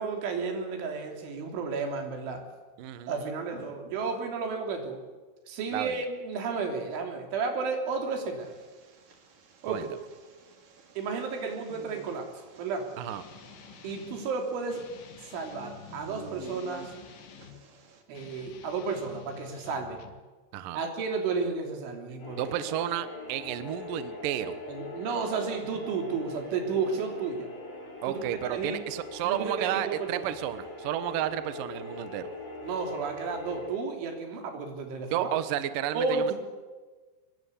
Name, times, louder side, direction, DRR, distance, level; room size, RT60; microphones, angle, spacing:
voice 1, 0.0-2.5 3.1-5.0 5.5-8.6 9.6-9.9 11.0-12.3 12.6-12.9 13.8-14.9 15.2-16.9 18.1-20.0 20.7-22.4 24.7-27.5 28.1-28.2 28.5-28.8 29.2-30.3 32.6-35.3 35.9-36.3, right 4 dB, 85° right, 4 dB, 5.6 m, -32 dB
voice 2, 2.8-3.3 5.7-6.0 9.7-10.0 13.0-13.2 20.5-20.8 22.4-24.6 28.0-32.3 35.1-36.3, right 11 dB, 70° right, 12 dB, 2.2 m, -32 dB
sound 1, 8.4-18.0, right 6 dB, 50° right, 4.1 m, -52 dB
Guitar, 13.0-14.3 14.7-17.6 18.1-20.3, left 8 dB, 85° left, 4.2 m, -49 dB
sound 2, 22.2-33.7, left 2 dB, 50° left, 7.4 m, -42 dB
25.0 x 22.0 x 8.4 m, 1.3 s
omnidirectional pair, 5.4 m